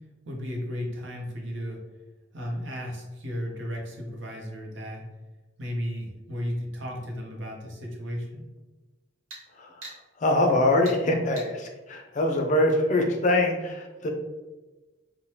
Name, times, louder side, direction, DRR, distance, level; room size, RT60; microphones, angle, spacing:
voice 1, 0.2-1.8 2.3-5.0 5.6-8.4, equal, 65° right, 0 dB, 0.7 m, -34 dB
sound 1, 9.3-9.5 9.8-10.0 10.8-11.0 11.4-11.5, right 2 dB, 85° right, 1.1 m, -41 dB
voice 2, 10.2-14.1, left 1 dB, 40° left, 2 dB, 0.4 m, -23 dB
3.2 x 2.1 x 2.8 m, 1.2 s
head